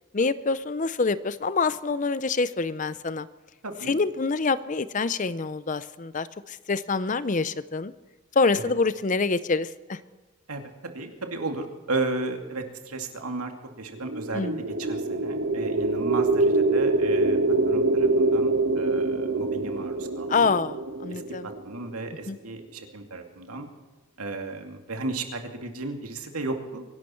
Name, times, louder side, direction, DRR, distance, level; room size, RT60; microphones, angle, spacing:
voice 1, 0.1-3.3 3.9-7.9 8.4-10.0 14.3-14.6 20.3-20.8 21.0-21.5 22.3-22.4, left 4 dB, 35° left, 16 dB, 0.5 m, -26 dB
voice 2, 3.6-4.0 10.5-13.5 13.8-14.5 14.8-17.4 17.7-20.5 21.1-23.7 24.2-26.8, right 3 dB, 90° right, 4 dB, 2.4 m, -34 dB
sound 1, 13.9-22.1, right 2 dB, 65° right, 1.4 m, -25 dB
24.5 x 12.0 x 4.5 m, 1.3 s
head